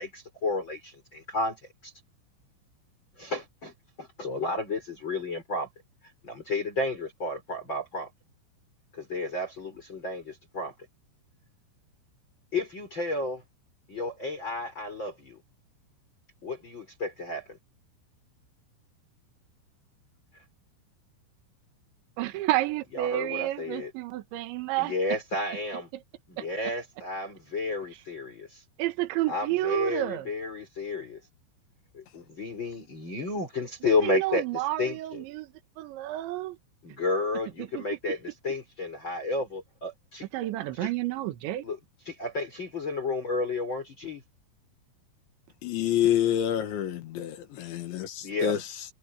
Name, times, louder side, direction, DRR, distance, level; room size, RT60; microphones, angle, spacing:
voice 1, 0.0-1.9 3.2-5.7 6.2-8.1 8.9-10.7 12.5-13.4 13.9-15.4 16.4-17.6 22.9-23.9 24.8-25.9 26.3-28.6 29.3-31.2 31.9-35.2 36.8-40.3 40.8-40.9 41.6-41.8 42.1-44.2 48.2-48.5, left 3 dB, 25° left, 5.0 m, -32 dB
voice 2, 22.2-24.9 26.4-26.5 28.8-30.3 33.8-36.6 37.6-37.8 40.3-41.7, right 16 dB, 70° right, 3.7 m, -30 dB
voice 3, 45.6-48.9, left 11 dB, 70° left, 4.1 m, -28 dB
omnidirectional pair, 5.8 m